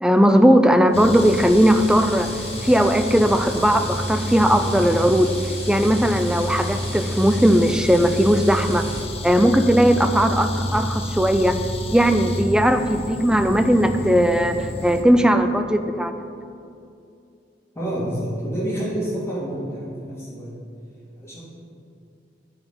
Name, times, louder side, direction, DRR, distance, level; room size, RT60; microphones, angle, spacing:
voice 1, 0.0-5.3 5.7-8.9 9.2-11.6 11.9-16.1, equal, 5° right, 8 dB, 0.3 m, -18 dB
sound 1, 0.9-15.0, equal, 35° left, 0.7 m, -29 dB
sound 2, 0.9-9.0, right 3 dB, 60° right, 1.7 m, -40 dB
voice 2, 17.7-20.5 21.2-21.4, right 1 dB, 15° left, -7 dB, 2.4 m, -28 dB
9.8 x 4.2 x 7.1 m, 2.6 s
head